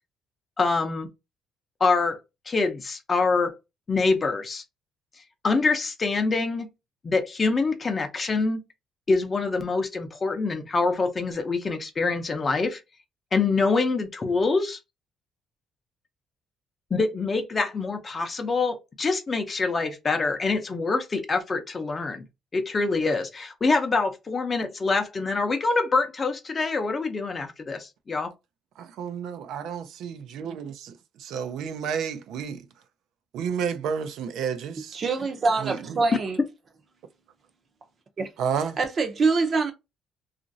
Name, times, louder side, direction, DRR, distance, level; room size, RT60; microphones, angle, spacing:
voice 1, 0.6-1.1 1.8-2.2 2.5-3.5 3.9-4.6 5.4-6.7 7.0-8.6 9.1-12.8 13.3-14.8 16.9-22.2 22.5-28.3, left 3 dB, 25° left, 0.6 m, -25 dB
voice 2, 28.8-32.7 33.3-35.0 35.6-36.0 38.4-38.8, right 7 dB, 80° right, 0.4 m, -31 dB
voice 3, 34.9-36.4 38.2-38.3 38.8-39.7, right 4 dB, 35° right, 0.6 m, -24 dB
2.9 x 2.5 x 2.6 m
cardioid pair, 140°, 0 cm